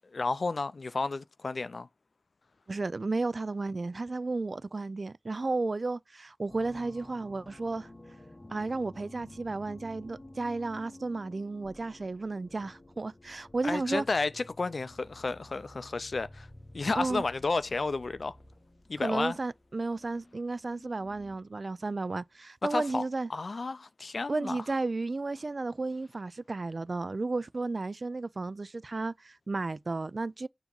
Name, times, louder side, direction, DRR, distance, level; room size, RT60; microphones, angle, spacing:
voice 1, 0.1-1.9 13.6-16.5 16.7-18.4 18.9-19.4 22.7-23.0 23.3-24.6, left 3 dB, 85° left, 0.3 m, -32 dB
voice 2, 2.7-7.9 8.5-14.0 16.9-17.2 19.0-23.3 24.3-30.5, right 3 dB, 65° right, 0.3 m, -33 dB
sound 1, 6.5-21.5, left 1 dB, 40° left, 1.0 m, -52 dB
7.0 x 2.8 x 5.2 m
wide cardioid pair, 65°, 0 cm